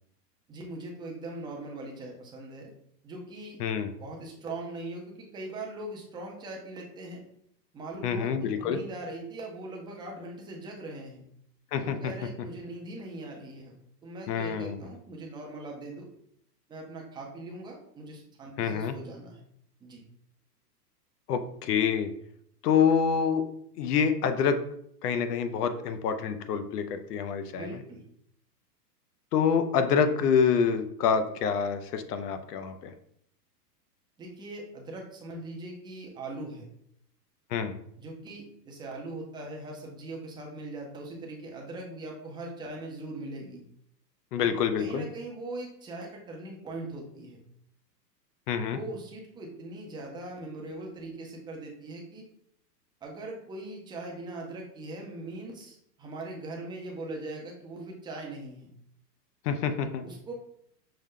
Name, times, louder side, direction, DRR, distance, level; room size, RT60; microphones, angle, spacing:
voice 1, 0.5-2.7 3.0-3.6 4.0-7.2 7.7-11.2 11.8-13.7 14.0-16.1 16.7-19.4 19.8-20.0 27.5-28.0 34.2-36.6 38.0-43.6 44.8-47.4 48.7-52.2 53.0-58.7 60.0-60.3, right 2 dB, 10° right, -1 dB, 0.5 m, -40 dB
voice 2, 8.0-8.8 11.7-12.0 14.3-14.8 18.6-18.9 21.3-22.1 22.6-23.4 23.8-24.6 25.0-27.7 29.3-32.9 37.5-37.7 44.3-45.1 48.5-48.8 59.5-60.0, left 7 dB, 70° left, 9 dB, 0.7 m, -26 dB
5.5 x 2.1 x 3.6 m, 0.70 s
hypercardioid pair, 125°, 49 cm